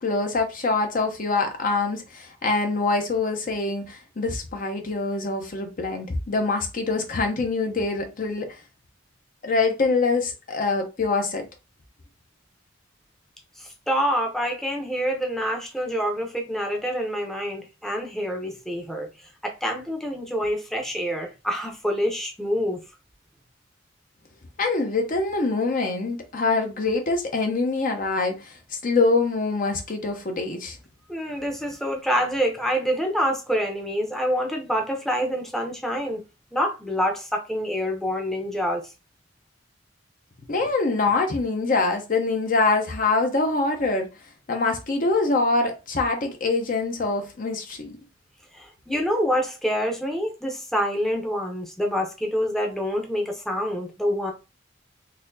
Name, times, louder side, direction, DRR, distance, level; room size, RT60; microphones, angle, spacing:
voice 1, 0.0-8.5 9.4-11.4 24.6-30.8 40.5-44.1 44.5-47.9, left 3 dB, 45° left, 0.7 m, -24 dB
voice 2, 13.9-19.1 19.4-22.8 31.1-36.2 36.5-38.8 48.5-54.3, equal, ahead, 0.7 m, -26 dB
4.1 x 2.7 x 2.7 m
head